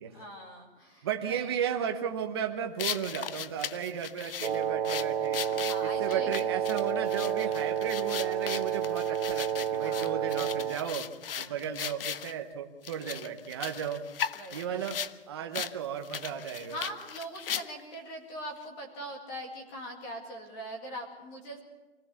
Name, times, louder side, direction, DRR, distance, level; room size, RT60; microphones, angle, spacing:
voice 1, 0.1-1.5 5.6-6.5 9.8-10.3 11.4-11.7 14.3-14.9 16.7-21.6, right 1 dB, 15° left, 3 dB, 2.1 m, -42 dB
voice 2, 1.0-5.4 5.8-11.1 11.4-14.1 14.5-15.0 15.3-16.8, right 8 dB, 25° right, 4 dB, 1.0 m, -34 dB
sound 1, 2.8-12.3 12.8-15.1 15.5-15.7 16.0-17.9, left 8 dB, 60° left, 0.7 m, -37 dB
Wind instrument woodwind instrument, 4.4-10.9, right 9 dB, 65° right, 0.9 m, -30 dB
25.0 x 15.5 x 7.0 m, 1.2 s
hypercardioid pair, 175°, 32 cm